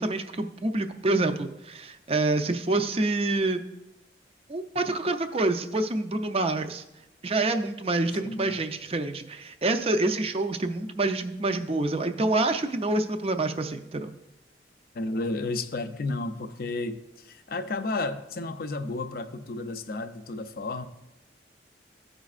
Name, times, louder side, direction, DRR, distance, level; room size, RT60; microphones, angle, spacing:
voice 1, 0.0-3.6 4.5-6.8 7.2-14.1, right 2 dB, 35° right, 7 dB, 0.5 m, -27 dB
voice 2, 8.1-8.5 14.9-20.8, left 2 dB, 55° left, 8 dB, 0.5 m, -32 dB
14.5 x 5.1 x 2.4 m, 0.94 s
head